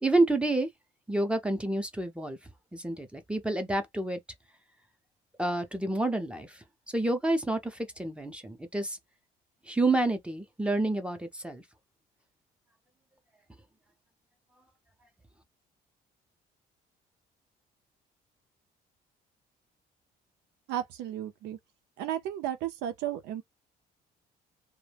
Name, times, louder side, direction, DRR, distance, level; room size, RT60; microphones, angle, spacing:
voice 1, 0.0-0.7 1.1-2.4 2.7-4.2 5.4-6.6 6.9-9.0 9.7-11.6, right 2 dB, 5° right, 0.5 m, -29 dB
voice 2, 20.7-21.6 22.0-23.4, right 11 dB, 90° right, 0.6 m, -34 dB
2.2 x 2.1 x 3.3 m
cardioid pair, 110°, 17 cm